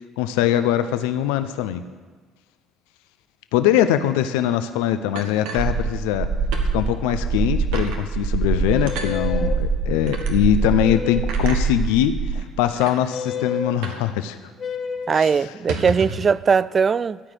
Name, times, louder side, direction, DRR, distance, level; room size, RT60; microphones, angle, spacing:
voice 1, 0.2-1.8 3.5-6.3 6.7-14.4 15.2-15.3, left 11 dB, 85° left, 0.6 m, -22 dB
sound 1, 5.2-6.2 6.5-6.7 7.1-7.2 7.7-8.0 8.9-9.1 10.1-10.3 11.3-11.6 12.4-12.5 12.8-13.0 13.8-14.1 14.3-14.4 14.8-15.0 15.5-16.3, right 4 dB, 80° right, 1.4 m, -32 dB
sound 2, 5.5-12.3, right 4 dB, 65° right, 4.5 m, -24 dB
sound 3, 8.6-9.6 10.8-11.4 13.1-13.7 14.6-15.2, left 6 dB, 45° left, 1.1 m, -30 dB
voice 2, 15.1-17.2, right 5 dB, 40° right, 0.3 m, -19 dB
13.5 x 5.0 x 9.0 m
supercardioid pair, 75°, 0 cm